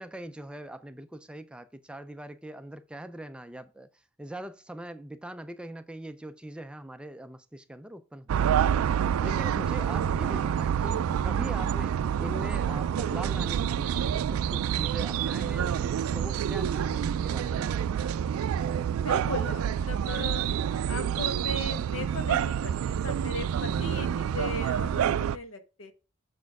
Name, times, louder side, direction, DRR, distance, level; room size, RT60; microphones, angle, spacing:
voice 1, 0.0-8.8 9.2-18.3, right 1 dB, 5° right, 0.3 m, -42 dB
sound 1, 8.3-25.4, right 8 dB, 90° right, 0.3 m, -28 dB
voice 2, 19.0-20.4 20.9-25.9, left 3 dB, 75° left, 1.0 m, -38 dB
6.7 x 4.3 x 4.6 m
head